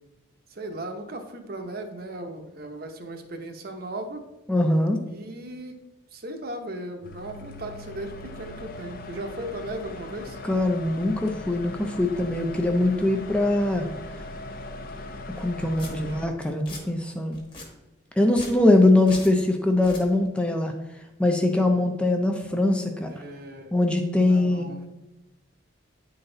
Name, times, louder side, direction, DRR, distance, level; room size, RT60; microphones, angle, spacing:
voice 1, 0.5-4.2 5.1-5.8 6.1-10.4 15.7-16.2 23.1-23.7 24.3-24.9, right 1 dB, 50° right, 5 dB, 0.8 m, -37 dB
voice 2, 4.5-5.0 10.4-13.9 15.4-17.4 18.2-20.7 21.2-23.1 23.7-24.9, left 2 dB, 5° left, 3 dB, 0.4 m, -22 dB
sound 1, 7.0-16.3, left 2 dB, 45° left, 0.7 m, -39 dB
Domestic sounds home sounds, 15.4-15.5 15.8-15.9 16.4-16.8 17.3-17.7 18.3-18.6 19.1-19.3 19.7-20.0, left 2 dB, 25° left, 1.2 m, -40 dB
9.0 x 4.0 x 3.8 m, 1.0 s
head